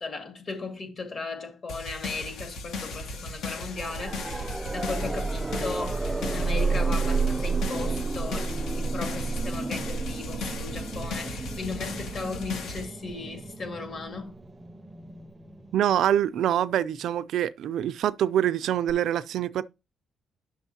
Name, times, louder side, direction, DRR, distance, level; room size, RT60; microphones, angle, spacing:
voice 1, 0.0-14.4, left 4 dB, 45° left, 2.1 m, -37 dB
sound 1, 1.7-12.8, left 3 dB, 80° left, 1.3 m, -37 dB
sound 2, 3.7-16.5 18.9-19.0, right 4 dB, 20° right, 0.5 m, -31 dB
voice 2, 15.7-19.6, right 11 dB, 75° right, 0.4 m, -25 dB
8.6 x 6.3 x 2.8 m
cardioid pair, 90°, 0 cm